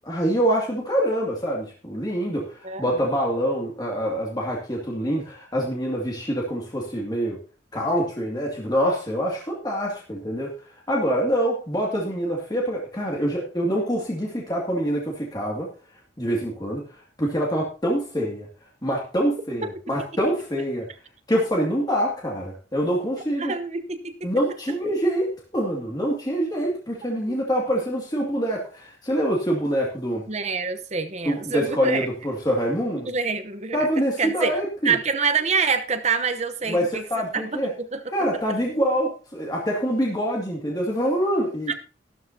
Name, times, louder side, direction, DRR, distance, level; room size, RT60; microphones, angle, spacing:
voice 1, 0.1-7.4 7.7-10.5 10.9-15.7 16.2-16.8 17.2-18.5 18.8-20.9 21.3-23.6 24.2-30.3 31.2-33.1 33.7-35.0 36.7-37.7 38.1-41.7, equal, 20° left, -2 dB, 2.3 m, -25 dB
voice 2, 2.6-3.0 19.6-19.7 23.4-24.1 30.3-32.1 33.1-33.9 34.2-34.5 34.8-37.0 37.3-37.6 37.9-38.0 41.7-41.8, right 5 dB, 35° right, 8 dB, 0.9 m, -26 dB
13.5 x 12.0 x 2.8 m, 0.36 s
head